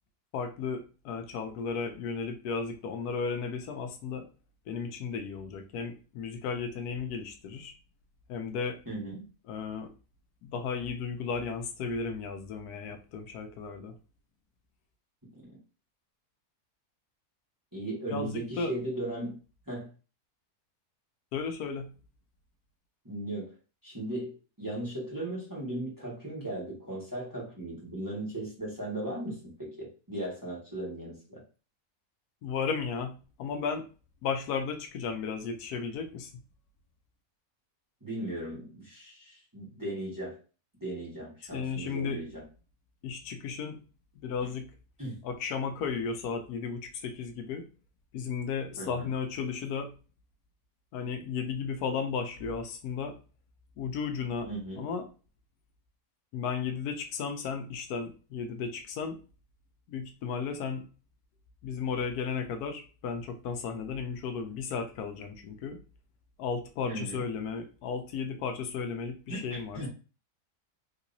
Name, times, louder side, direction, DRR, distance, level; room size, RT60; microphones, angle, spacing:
voice 1, 0.3-4.3 4.7-7.7 8.3-8.8 9.5-9.9 10.4-14.0 18.1-18.7 21.3-21.9 32.4-33.9 34.2-36.3 41.5-42.2 43.0-43.8 44.2-44.7 45.2-47.6 48.1-49.9 50.9-53.2 53.8-54.5 54.8-55.1 56.3-59.2 59.9-60.9 61.6-65.8 66.4-69.9, left 5 dB, 85° left, 6 dB, 1.1 m, -34 dB
voice 2, 8.9-9.2 15.3-15.4 17.7-19.4 19.7-19.9 23.0-23.5 23.8-31.4 38.0-40.4 40.8-42.4 44.4-44.5 45.0-45.2 48.8-49.1 54.5-54.8 66.9-67.2 69.3-69.9, right 1 dB, 15° right, -6 dB, 1.4 m, -37 dB
3.6 x 2.9 x 2.6 m, 0.34 s
omnidirectional pair, 1.6 m